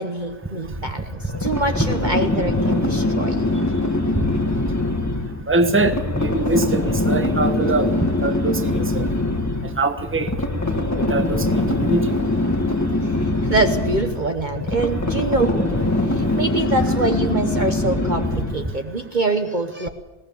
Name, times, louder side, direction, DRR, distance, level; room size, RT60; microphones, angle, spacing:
voice 1, 0.0-3.6 13.0-13.1 13.4-15.7 16.1-19.9, right 2 dB, 40° right, 5 dB, 1.1 m, -25 dB
sound 1, 1.1-18.7, left 2 dB, 15° left, 1.5 m, -22 dB
voice 2, 5.5-7.9 8.2-9.0 9.8-10.3 11.1-12.1, right 2 dB, 10° right, 7 dB, 1.2 m, -22 dB
20.5 x 18.0 x 7.0 m, 1.1 s
omnidirectional pair, 1.3 m